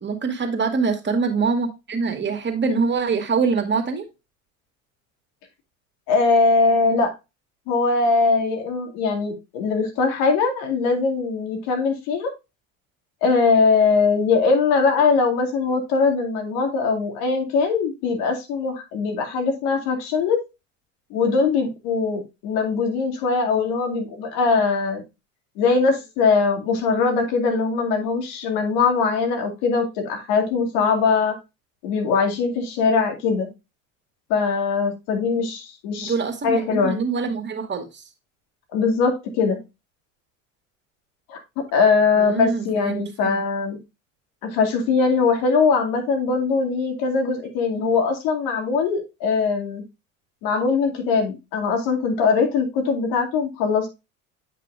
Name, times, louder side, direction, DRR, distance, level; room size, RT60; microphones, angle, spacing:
voice 1, 0.0-4.1 36.0-38.0 42.2-43.4, right 5 dB, 30° right, 5 dB, 2.1 m, -24 dB
voice 2, 6.1-7.1 7.7-12.3 13.2-20.4 21.1-25.0 25.6-31.4 31.8-33.5 34.3-36.1 36.4-37.0 38.7-39.6 41.3-41.4 41.7-43.8 44.4-49.8 50.4-53.9, left 4 dB, 65° left, 4 dB, 2.4 m, -21 dB
8.6 x 5.7 x 2.5 m, 0.25 s
hypercardioid pair, 75°, 39 cm